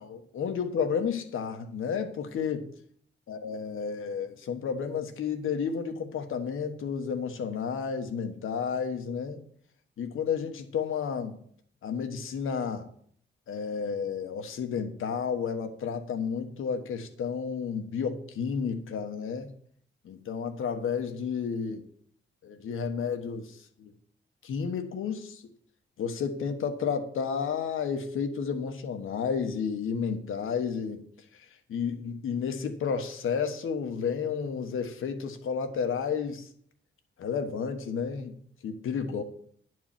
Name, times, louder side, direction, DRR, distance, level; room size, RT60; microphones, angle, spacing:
voice 1, 0.0-2.7 3.3-9.4 10.0-11.4 11.8-12.9 13.5-19.5 20.0-21.8 22.4-23.9 24.4-25.4 26.0-31.0 31.7-36.5 37.2-38.3 38.6-39.2, left 6 dB, 80° left, 1.3 m, -31 dB
10.5 x 4.7 x 7.5 m
wide cardioid pair, 125°, 20 cm